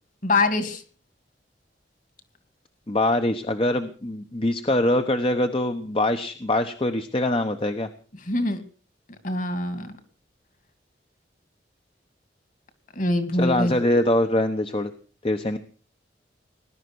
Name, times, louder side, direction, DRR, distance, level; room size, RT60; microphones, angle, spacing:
voice 1, 0.2-0.8 8.3-8.6 9.2-9.9 13.0-13.7, left 2 dB, 45° left, 10 dB, 2.5 m, -24 dB
voice 2, 2.9-7.9 13.4-14.9 15.2-15.6, left 1 dB, 30° left, 8 dB, 1.0 m, -23 dB
19.5 x 11.5 x 6.3 m, 0.41 s
head